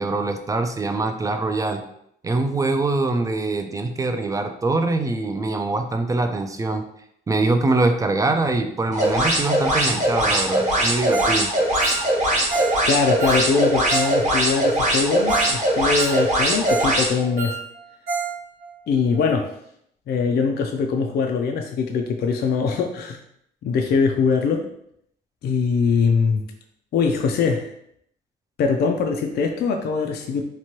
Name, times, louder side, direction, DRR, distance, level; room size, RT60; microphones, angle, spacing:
voice 1, 0.0-1.8 2.2-6.8 7.3-11.5, right 2 dB, 15° right, 6 dB, 0.3 m, -23 dB
sound 1, 8.9-17.1, right 1 dB, 35° right, 1.1 m, -21 dB
Ringtone, 11.1-11.4 11.7-14.2 14.4-14.5 15.0-15.1 15.3-15.6 15.8-17.0 17.2-18.4 18.6-18.7 19.2-19.3, right 5 dB, 75° right, 0.7 m, -29 dB
voice 2, 12.9-17.6 18.9-19.5 20.1-23.2 23.6-24.7 25.4-26.4 26.9-27.7 28.6-30.4, left 5 dB, 55° left, 4 dB, 0.4 m, -22 dB
2.9 x 2.2 x 2.8 m, 0.72 s
cardioid pair, 90°, 20 cm